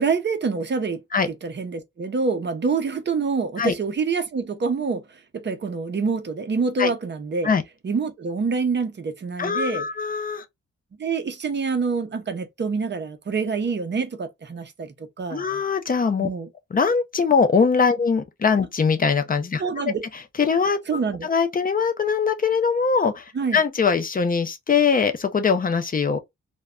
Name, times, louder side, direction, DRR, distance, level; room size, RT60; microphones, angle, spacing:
voice 1, 0.0-1.0 1.3-7.5 7.8-9.9 11.0-15.4 16.2-16.5 19.6-20.0 20.9-21.3 23.3-23.6, right 4 dB, 35° right, 0.5 m, -26 dB
voice 2, 9.4-10.4 15.3-16.3 16.7-19.6 20.4-20.8 21.2-23.2 23.5-26.2, left 5 dB, 30° left, 0.4 m, -21 dB
2.1 x 2.1 x 3.5 m
wide cardioid pair, 140°, 30 cm